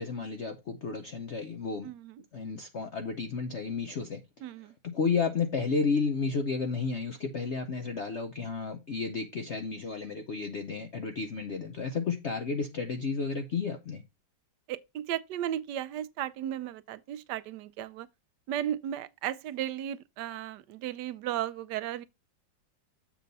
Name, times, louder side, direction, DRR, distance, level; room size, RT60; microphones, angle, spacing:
voice 1, 0.0-1.9 2.3-4.2 4.8-14.0, left 4 dB, 60° left, 0.7 m, -32 dB
voice 2, 1.8-2.2 4.4-4.7 14.7-18.1 18.5-22.0, right 11 dB, 75° right, 1.1 m, -35 dB
7.4 x 5.4 x 4.0 m
omnidirectional pair, 2.0 m